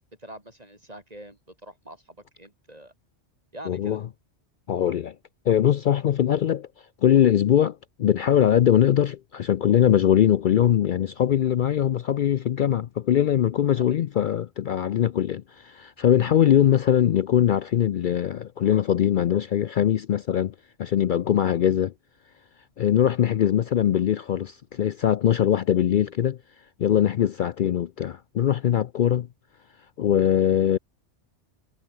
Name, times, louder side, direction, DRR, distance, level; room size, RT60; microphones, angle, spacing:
voice 1, 0.2-2.9 3.5-4.0, right 1 dB, 35° right, 4.8 m, -44 dB
voice 2, 3.7-4.0 4.7-5.1 5.5-6.7 7.0-20.5 20.8-21.9 22.8-26.4 26.8-29.3 30.0-30.8, left 10 dB, 60° left, 0.5 m, -21 dB
omnidirectional pair, 1.2 m